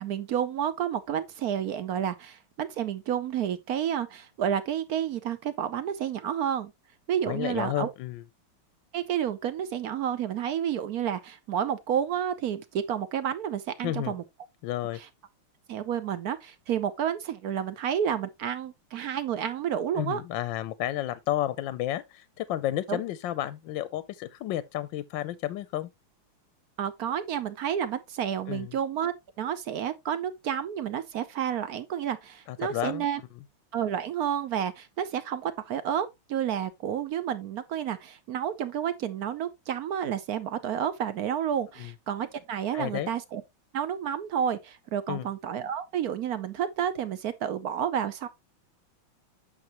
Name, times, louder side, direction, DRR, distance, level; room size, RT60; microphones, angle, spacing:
voice 1, 0.0-6.7 7.1-7.9 8.9-14.2 15.7-20.2 22.9-23.0 26.8-33.2 33.7-43.4 43.7-48.3, right 9 dB, 65° right, 0.9 m, -30 dB
voice 2, 7.3-8.2 13.8-14.2 14.6-15.0 19.9-25.9 28.5-28.7 32.5-33.0 41.8-41.9 42.7-43.1 45.1-45.3, left 13 dB, 75° left, 1.2 m, -31 dB
8.7 x 6.5 x 2.9 m
omnidirectional pair, 2.3 m